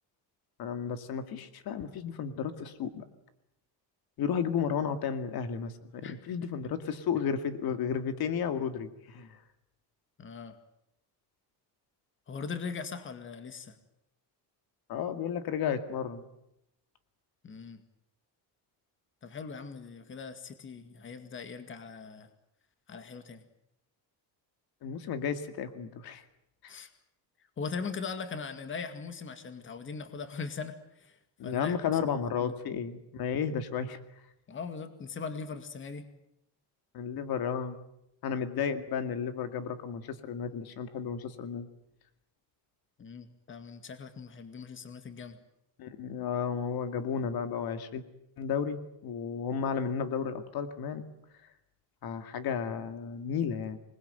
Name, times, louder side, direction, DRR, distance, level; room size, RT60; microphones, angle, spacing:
voice 1, 0.6-3.0 4.2-9.4 14.9-16.2 24.8-26.2 26.6-26.7 31.4-34.0 36.9-37.8 38.2-41.7 45.8-48.0 48.4-51.0 52.0-53.8, left 7 dB, 60° left, 9 dB, 2.2 m, -33 dB
voice 2, 10.2-10.5 12.3-13.7 17.4-17.8 19.2-22.3 22.9-23.4 26.7-26.9 27.6-31.2 31.4-32.0 32.4-32.5 34.5-36.0 43.0-45.4, left 5 dB, 30° left, 9 dB, 2.2 m, -40 dB
26.5 x 20.5 x 9.2 m, 0.81 s
cardioid pair, 165°, 41 cm